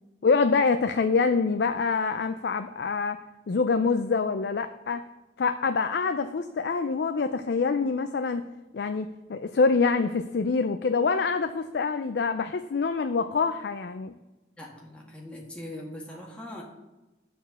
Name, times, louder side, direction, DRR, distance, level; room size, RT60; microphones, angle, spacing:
voice 1, 0.2-3.2 3.5-5.0 5.4-8.4 8.7-14.1, left 4 dB, 65° left, 9 dB, 0.4 m, -25 dB
voice 2, 14.6-16.6, left 1 dB, 5° left, -3 dB, 1.5 m, -41 dB
10.0 x 4.4 x 7.0 m, 1.1 s
head